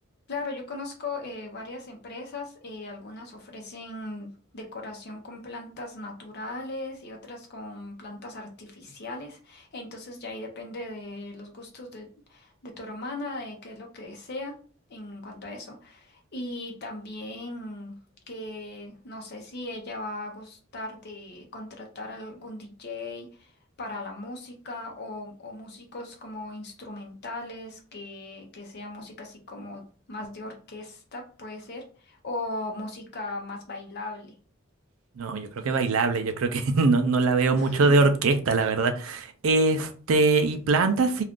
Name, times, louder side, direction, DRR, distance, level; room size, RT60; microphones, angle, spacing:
voice 1, 0.3-14.5 14.9-17.9 18.3-23.5 23.8-29.8 30.1-34.3 37.6-38.1, left 2 dB, 55° left, 0.7 m, -38 dB
voice 2, 35.2-41.2, right 3 dB, 75° right, 0.4 m, -22 dB
2.4 x 2.4 x 3.5 m
head